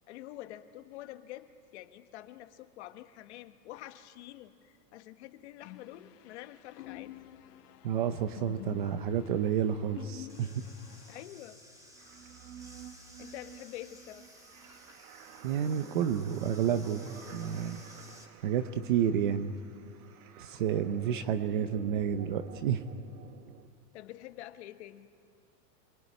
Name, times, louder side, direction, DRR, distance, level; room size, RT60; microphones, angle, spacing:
voice 1, 0.1-7.1 11.1-11.6 13.2-14.3 17.4-17.5 18.2-18.3 23.9-25.1, left 14 dB, 40° left, 9 dB, 1.2 m, -47 dB
sound 1, 5.6-11.2, left 15 dB, 70° left, 1.1 m, -49 dB
voice 2, 7.8-10.5 15.4-17.8 18.4-19.5 20.4-22.8, right 9 dB, 30° right, 10 dB, 0.6 m, -30 dB
sound 2, 10.3-18.2, equal, 5° right, 2.5 m, -55 dB
sound 3, 11.9-23.7, right 9 dB, 60° right, 1.8 m, -50 dB
25.0 x 20.5 x 9.7 m, 2.3 s
supercardioid pair, 175°, 49 cm